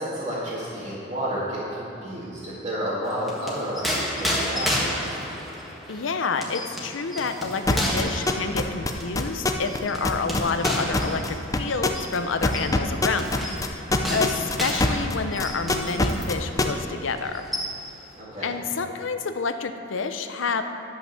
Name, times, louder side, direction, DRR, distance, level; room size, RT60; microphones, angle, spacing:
voice 1, 0.0-4.9 18.1-18.6, equal, 30° right, -12 dB, 2.2 m, -31 dB
sound 1, 3.1-16.4 16.7-16.9 17.2-18.0, equal, ahead, 1.6 m, -31 dB
voice 2, 5.9-17.5 18.4-20.6, left 4 dB, 75° left, 8 dB, 0.6 m, -29 dB
sound 2, 7.7-9.8 10.0-15.1 15.4-16.6, left 2 dB, 20° left, 0.5 m, -22 dB
11.5 x 5.7 x 6.9 m, 3.0 s
head